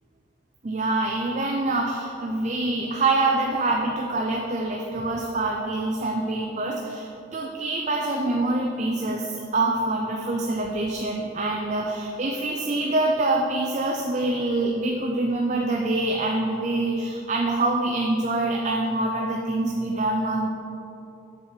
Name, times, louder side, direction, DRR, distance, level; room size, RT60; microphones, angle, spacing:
voice 1, 0.6-20.5, right 2 dB, 40° right, 1 dB, 0.5 m, -25 dB
7.8 x 6.5 x 4.5 m, 2.8 s
head